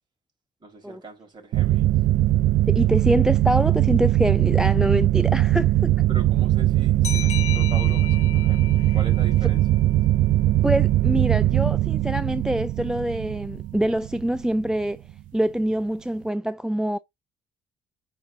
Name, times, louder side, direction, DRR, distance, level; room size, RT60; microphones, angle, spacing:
voice 1, 0.6-1.9 6.1-9.6, right 2 dB, 30° right, 4.3 m, -41 dB
sound 1, 1.5-14.8, right 14 dB, 65° right, 0.5 m, -20 dB
voice 2, 2.7-5.9 10.5-15.0 15.3-17.0, equal, 5° right, 0.4 m, -25 dB
sound 2, 7.0-10.4, left 10 dB, 45° left, 1.5 m, -36 dB
9.0 x 4.0 x 2.7 m
hypercardioid pair, 65°, 15 cm